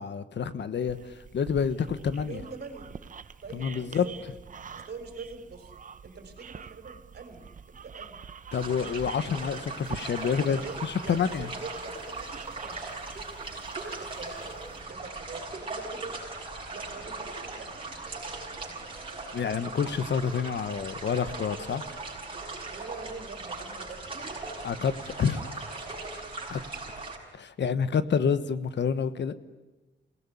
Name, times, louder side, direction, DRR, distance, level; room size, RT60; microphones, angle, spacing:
voice 1, 0.0-2.4 3.5-4.1 8.5-11.5 19.3-21.8 24.6-25.8 26.5-26.6 27.3-29.3, left 6 dB, 70° left, 13 dB, 1.3 m, -28 dB
sound 1, 0.9-14.8, right 6 dB, 45° right, 0.8 m, -46 dB
voice 2, 2.2-2.9 3.4-4.1 4.7-5.7 6.0-8.2 10.0-10.8 11.0-12.8 13.4-14.5 14.9-16.2 16.7-18.8 22.7-24.2, right 4 dB, 60° right, 7 dB, 4.1 m, -44 dB
sound 2, 8.5-27.2, right 3 dB, 30° right, 6.3 m, -39 dB
28.0 x 18.0 x 10.0 m, 1.1 s
wide cardioid pair, 170°, 19 cm